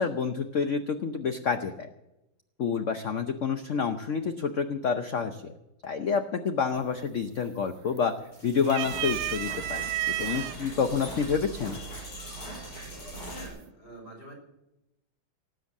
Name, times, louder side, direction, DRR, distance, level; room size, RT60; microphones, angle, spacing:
voice 1, 0.0-1.9 2.6-5.4 5.8-8.1 8.4-11.8, left 6 dB, 60° left, 7 dB, 0.8 m, -28 dB
sound 1, 6.8-7.2 7.5-8.2 8.6-10.6 11.4-11.5 12.8-13.2, right 15 dB, 90° right, 1.6 m, -32 dB
sound 2, 8.3-13.5, right 2 dB, 90° left, 5.9 m, -40 dB
voice 2, 13.3-14.3, equal, 30° left, 0 dB, 4.8 m, -46 dB
19.0 x 8.0 x 7.2 m, 0.91 s
omnidirectional pair, 2.3 m